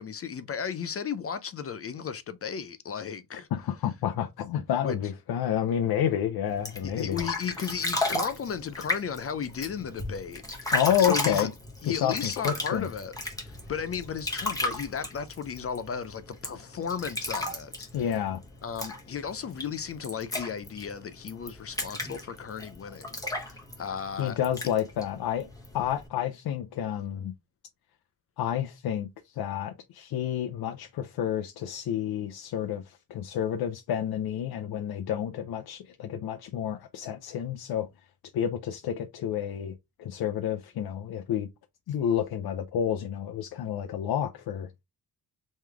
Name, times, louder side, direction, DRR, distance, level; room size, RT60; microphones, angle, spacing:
voice 1, 0.0-3.5 4.8-5.0 6.8-11.5 11.8-18.2 18.6-24.4, left 7 dB, 40° left, 0.4 m, -35 dB
voice 2, 3.5-7.2 10.7-11.5 11.9-12.9 17.9-18.4 24.2-25.5 25.7-27.3 28.4-37.9 38.3-41.5 41.9-44.7, left 9 dB, 85° left, 0.6 m, -29 dB
sound 1, 6.5-26.1, left 2 dB, 10° left, 1.1 m, -35 dB
3.7 x 3.1 x 3.2 m
wide cardioid pair, 150°, 37 cm